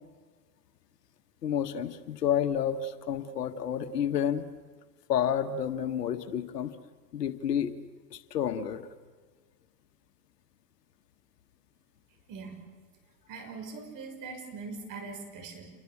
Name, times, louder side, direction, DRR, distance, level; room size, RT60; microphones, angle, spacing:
voice 1, 1.4-4.5 5.1-6.8 7.1-7.7 8.1-8.9, left 9 dB, 80° left, 9 dB, 1.8 m, -30 dB
voice 2, 12.3-12.6 13.3-15.8, right 4 dB, 40° right, 5 dB, 6.3 m, -42 dB
28.5 x 23.5 x 7.4 m, 1.5 s
hypercardioid pair, 105°, 48 cm